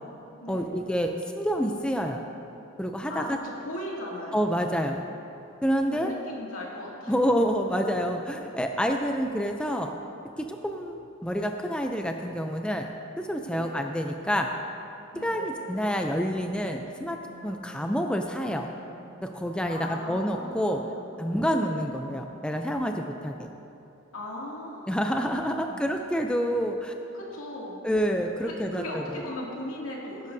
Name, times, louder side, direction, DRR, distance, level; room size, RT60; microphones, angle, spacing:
voice 1, 0.5-2.2 2.8-3.4 4.3-5.0 5.6-6.1 7.1-9.9 10.4-12.9 13.2-14.5 15.2-17.2 17.4-18.7 19.2-20.8 21.2-23.5 24.9-26.9 27.8-29.2, equal, 5° left, 3 dB, 0.4 m, -28 dB
voice 2, 3.1-4.4 5.9-7.4 13.5-13.8 15.1-15.5 19.7-21.0 21.5-21.7 24.1-25.1 25.5-25.8 27.1-27.8 28.5-30.3, left 1 dB, 75° left, -4 dB, 2.4 m, -38 dB
Wind instrument woodwind instrument, 17.1-22.8, right 1 dB, 85° right, 2.9 m, -50 dB
18.0 x 10.5 x 2.7 m, 2.9 s
head